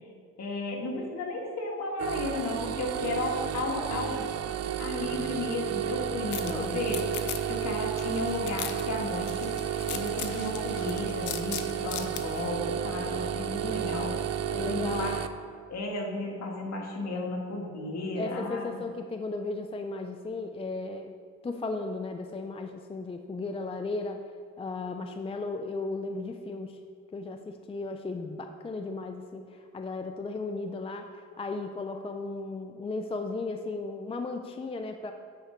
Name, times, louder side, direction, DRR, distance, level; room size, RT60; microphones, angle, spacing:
voice 1, 0.4-4.3 4.8-14.2 14.6-15.3 15.7-18.7, left 2 dB, 60° left, -1 dB, 1.9 m, -34 dB
sound 1, 2.0-15.3, right 9 dB, 55° right, 0.5 m, -32 dB
sound 2, 6.3-12.5, left 11 dB, 75° left, 0.7 m, -40 dB
voice 2, 6.4-6.8 13.6-14.1 14.5-15.2 18.1-21.1 21.4-24.2 24.6-26.8 27.1-35.1, left 3 dB, 20° left, 6 dB, 0.5 m, -35 dB
9.4 x 4.4 x 5.1 m, 2.3 s
cardioid pair, 90°, 30 cm